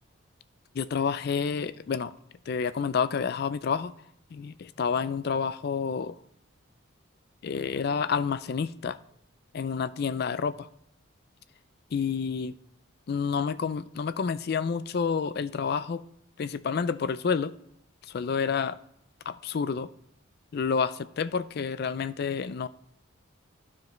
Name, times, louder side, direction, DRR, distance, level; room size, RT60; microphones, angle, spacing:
voice 1, 0.8-2.1 2.5-3.9 4.3-6.1 7.4-9.0 9.5-10.7 11.9-12.5 13.1-16.0 16.4-17.5 18.1-18.8 19.3-19.9 20.5-22.7, left 6 dB, 50° left, 0.3 m, -29 dB
11.5 x 5.0 x 3.1 m
head